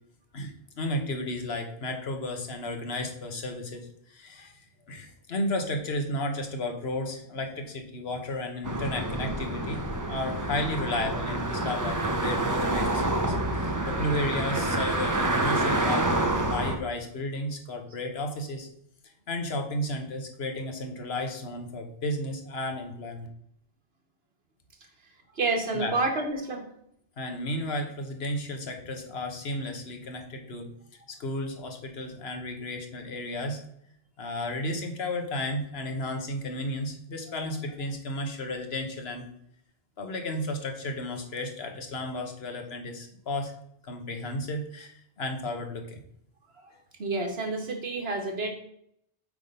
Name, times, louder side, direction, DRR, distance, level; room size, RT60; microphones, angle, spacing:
voice 1, 0.3-18.7 19.3-23.3 25.7-26.0 27.2-30.7 31.1-33.6 34.2-39.3 40.0-43.5 43.8-46.0, left 1 dB, 90° left, 5 dB, 1.4 m, -33 dB
sound 1, 8.6-16.8, right 1 dB, 20° right, 0.7 m, -28 dB
voice 2, 25.4-26.6 46.6-46.7 47.0-48.5, right 3 dB, 75° right, 2 dB, 1.7 m, -29 dB
8.2 x 3.6 x 5.4 m, 0.71 s
omnidirectional pair, 1.0 m